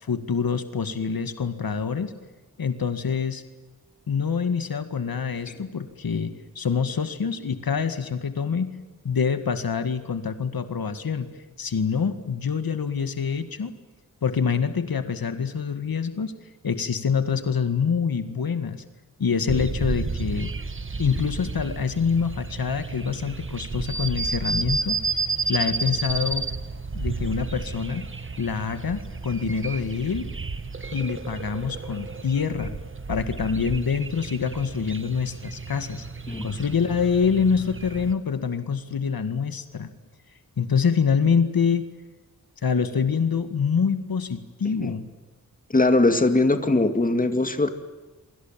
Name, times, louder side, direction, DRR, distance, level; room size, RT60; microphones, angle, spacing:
voice 1, 0.0-2.1 2.6-3.4 4.1-8.7 9.0-11.3 11.6-13.7 14.2-16.3 16.6-18.8 19.2-20.5 21.0-25.0 25.5-26.5 26.9-28.0 28.4-30.3 30.9-32.8 33.1-36.1 36.4-39.9 40.6-41.9 42.6-45.1, left 6 dB, 80° left, 9 dB, 2.0 m, -26 dB
sound 1, 19.5-38.1, right 4 dB, 35° right, 1.5 m, -32 dB
voice 2, 45.7-47.7, left 2 dB, 25° left, 8 dB, 2.2 m, -21 dB
28.0 x 24.5 x 7.5 m, 1.2 s
wide cardioid pair, 110°, 36 cm